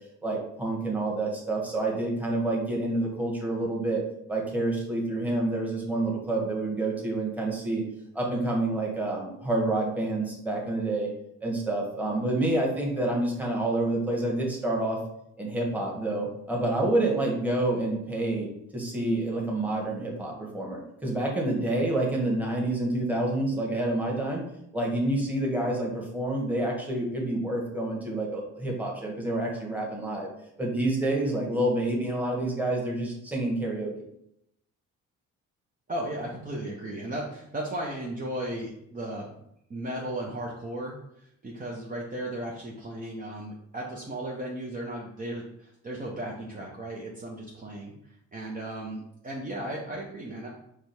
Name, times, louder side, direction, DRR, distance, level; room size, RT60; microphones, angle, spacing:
voice 1, 0.2-4.0 4.3-7.8 8.1-11.1 11.4-15.0 15.4-18.5 18.7-24.4 24.7-30.3 30.6-33.9, right 2 dB, 5° right, -2 dB, 1.5 m, -28 dB
voice 2, 35.9-39.3 39.7-50.5, right 1 dB, 30° right, -3 dB, 0.8 m, -35 dB
4.9 x 2.4 x 4.4 m, 0.77 s
cardioid pair, 90°, 30 cm